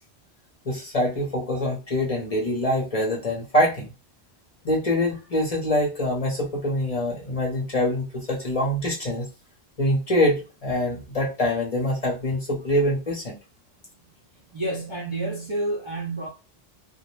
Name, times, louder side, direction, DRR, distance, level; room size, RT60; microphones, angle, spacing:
voice 1, 0.7-3.9 4.6-9.3 9.8-13.4, left 1 dB, 40° left, 0.8 m, -24 dB
voice 2, 14.5-16.3, right 2 dB, 40° right, 0.5 m, -29 dB
2.3 x 2.0 x 3.0 m
omnidirectional pair, 1.1 m